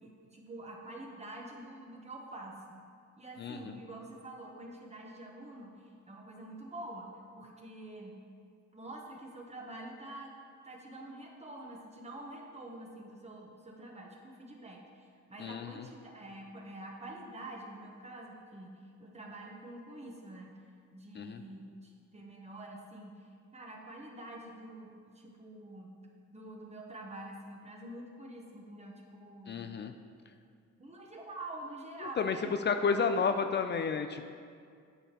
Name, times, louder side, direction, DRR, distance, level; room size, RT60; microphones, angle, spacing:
voice 1, 0.0-2.8 3.2-7.1 7.4-8.2 8.7-10.3 10.6-18.7 19.0-20.5 20.9-25.9 26.3-29.7 30.8-33.4, right 1 dB, 20° right, -1 dB, 1.0 m, -47 dB
voice 2, 3.4-3.8 15.4-15.8 21.2-21.4 29.5-29.9 32.2-32.4 32.7-34.3, left 5 dB, 35° left, 7 dB, 0.4 m, -31 dB
8.9 x 6.4 x 2.9 m, 2.2 s
cardioid pair, 90°, 30 cm